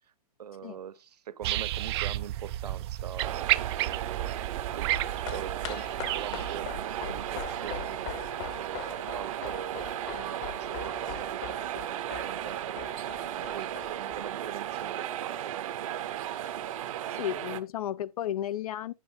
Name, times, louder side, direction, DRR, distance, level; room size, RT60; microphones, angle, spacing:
voice 1, 0.4-8.1 8.6-12.9 13.1-13.7 14.0-15.9, right 9 dB, 85° right, 0.8 m, -43 dB
sound 1, 1.4-9.6 10.1-10.2, right 15 dB, 40° right, 0.5 m, -33 dB
sound 2, 3.2-17.6, right 11 dB, 55° right, 1.1 m, -35 dB
sound 3, 4.6-15.2 15.4-15.5, left 9 dB, 40° left, 1.0 m, -43 dB
voice 2, 17.2-18.9, left 11 dB, 65° left, 0.6 m, -33 dB
11.0 x 9.3 x 2.2 m
hypercardioid pair, 140°, 20 cm